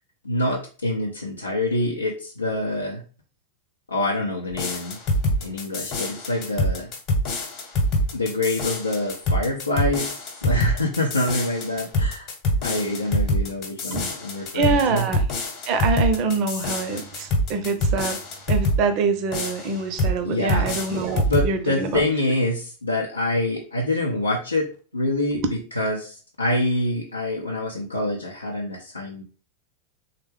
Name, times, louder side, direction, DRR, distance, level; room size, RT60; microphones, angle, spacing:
voice 1, 0.2-3.0 3.9-5.0 5.4-6.9 8.1-12.3 12.6-15.1 20.2-20.7 21.2-24.7 24.9-25.4 25.7-29.2, left 1 dB, 80° left, -2 dB, 0.5 m, -26 dB
sound 1, 4.5-18.8 19.3-20.2 20.5-21.5, equal, 35° left, 1.0 m, -25 dB
voice 2, 14.5-15.3 15.7-18.2 18.5-22.4 25.3-25.5, right 4 dB, 40° right, 8 dB, 0.5 m, -25 dB
3.4 x 2.1 x 3.4 m, 0.38 s
figure-of-eight pair, 90°, 0 cm